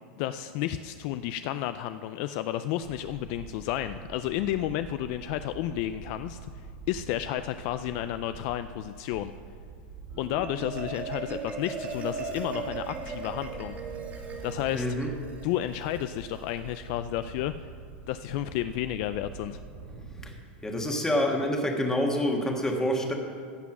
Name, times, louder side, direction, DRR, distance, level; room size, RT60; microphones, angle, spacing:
voice 1, 0.2-6.5 6.9-9.3 10.2-13.8 14.4-14.9 15.4-17.5 18.1-19.6, left 12 dB, 55° left, 11 dB, 0.4 m, -31 dB
sound 1, 2.8-20.3, right 4 dB, 60° right, 3.1 m, -45 dB
Marimba xylophone, 10.1-16.8, right 4 dB, 25° right, 1.9 m, -38 dB
voice 2, 14.7-15.1 20.2-20.3 20.6-23.1, left 1 dB, 10° left, 2 dB, 1.5 m, -27 dB
15.5 x 6.0 x 6.0 m, 2.1 s
supercardioid pair, 130°, 6 cm